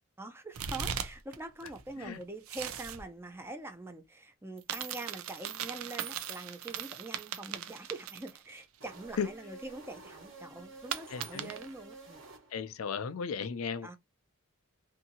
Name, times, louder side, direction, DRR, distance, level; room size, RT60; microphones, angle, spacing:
voice 1, 0.2-12.2 13.8-13.9, right 2 dB, 10° right, 0.4 m, -44 dB
sound 1, 0.5-1.4 1.6-3.0 4.6-8.6 8.9-9.0 10.9-11.7, right 8 dB, 80° right, 0.4 m, -39 dB
sound 2, 8.8-12.9, right 3 dB, 60° right, 1.1 m, -51 dB
voice 2, 11.1-11.5 12.5-13.9, left 6 dB, 85° left, 0.4 m, -35 dB
2.6 x 2.6 x 2.7 m
head